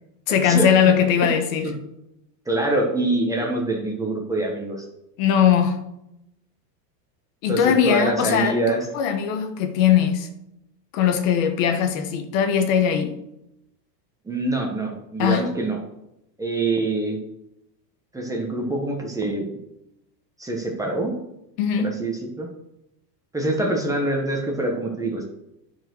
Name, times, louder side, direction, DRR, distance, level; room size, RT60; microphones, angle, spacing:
voice 1, 0.3-1.7 5.2-5.9 7.4-8.6 8.9-10.3 10.9-13.2 15.2-15.4 21.6-22.0, left 8 dB, 55° left, 1.3 m, -20 dB
voice 2, 2.5-4.9 7.5-8.8 14.2-15.8 16.4-17.2 18.1-19.6 20.4-21.1 21.8-22.5 23.3-25.3, right 2 dB, 5° right, 1.2 m, -25 dB
9.9 x 4.7 x 6.2 m
supercardioid pair, 155°, 49 cm